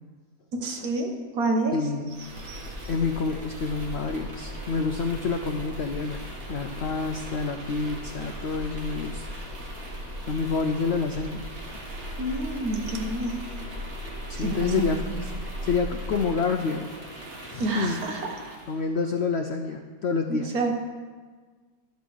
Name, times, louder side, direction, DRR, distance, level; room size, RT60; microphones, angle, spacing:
voice 1, 0.5-1.8 2.4-2.7 12.2-13.4 14.3-15.2 17.6-18.6 20.3-20.7, right 2 dB, 65° right, 3 dB, 1.6 m, -29 dB
voice 2, 1.7-2.6 2.9-9.3 10.2-11.5 14.3-16.9 17.4-18.0 18.7-20.5, left 4 dB, 90° left, 6 dB, 0.5 m, -28 dB
sound 1, 2.1-18.8, equal, 45° right, 1.8 m, -37 dB
12.5 x 5.3 x 6.3 m, 1.5 s
omnidirectional pair, 1.8 m